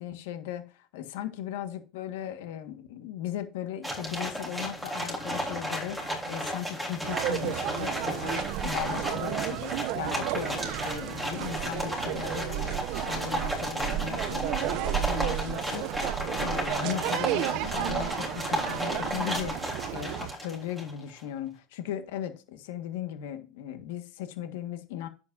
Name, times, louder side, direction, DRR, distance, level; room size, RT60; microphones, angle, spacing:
voice 1, 0.0-25.1, left 11 dB, 85° left, 1.6 m, -37 dB
sound 1, 3.8-21.0, equal, ahead, 3.5 m, -34 dB
sound 2, 7.0-20.3, right 15 dB, 55° right, 0.6 m, -33 dB
11.0 x 8.1 x 2.7 m
supercardioid pair, 155°, 0 cm